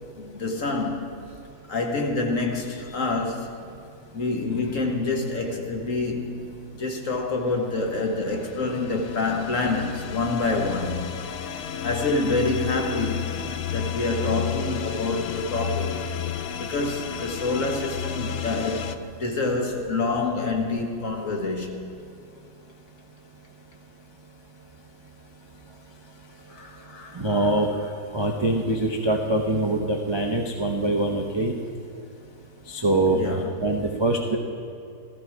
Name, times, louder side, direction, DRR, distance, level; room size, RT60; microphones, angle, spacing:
voice 1, 0.2-1.1 1.7-3.6 4.1-6.5 6.7-11.1 11.5-13.4 13.7-15.9 16.6-21.8 26.5-27.4 33.1-33.5, left 3 dB, 50° left, 2 dB, 1.6 m, -27 dB
sound 1, 8.0-18.9, left 8 dB, 80° left, 0.6 m, -32 dB
voice 2, 27.1-27.7 28.1-31.6 32.7-33.2 33.6-34.4, right 2 dB, 40° right, 1 dB, 0.3 m, -23 dB
14.0 x 14.0 x 4.7 m, 2.6 s
omnidirectional pair, 1.9 m